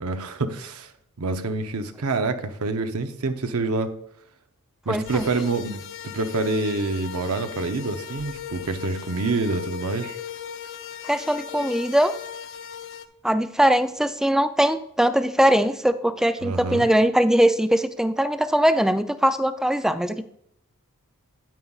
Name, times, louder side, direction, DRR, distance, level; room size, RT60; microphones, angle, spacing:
voice 1, 0.0-0.9 1.2-3.9 4.9-10.2 16.4-16.9, right 3 dB, 70° right, 8 dB, 0.7 m, -27 dB
voice 2, 4.9-5.3 11.0-12.1 13.2-20.2, equal, ahead, 11 dB, 0.3 m, -21 dB
sound 1, 5.0-13.1, left 9 dB, 60° left, 0.6 m, -38 dB
9.4 x 9.1 x 2.4 m, 0.71 s
head